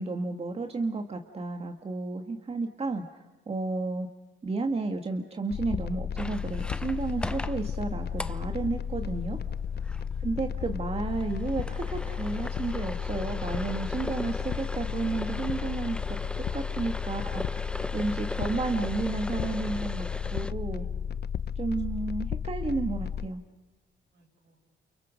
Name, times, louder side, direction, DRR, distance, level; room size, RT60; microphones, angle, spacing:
voice 1, 0.0-4.1 4.4-9.4 10.2-16.0 16.5-17.7 17.9-20.9 21.6-23.4, right 3 dB, 30° right, 4 dB, 1.9 m, -32 dB
sound 1, 5.5-23.3, left 7 dB, 55° left, 0.8 m, -33 dB
sound 2, 6.2-20.5, left 1 dB, 5° left, 0.7 m, -40 dB
voice 2, 9.7-10.7 20.7-22.8 24.1-24.6, equal, 65° right, 1 dB, 8.0 m, -60 dB
30.0 x 28.5 x 5.2 m, 1.2 s
cardioid pair, 90°, 20 cm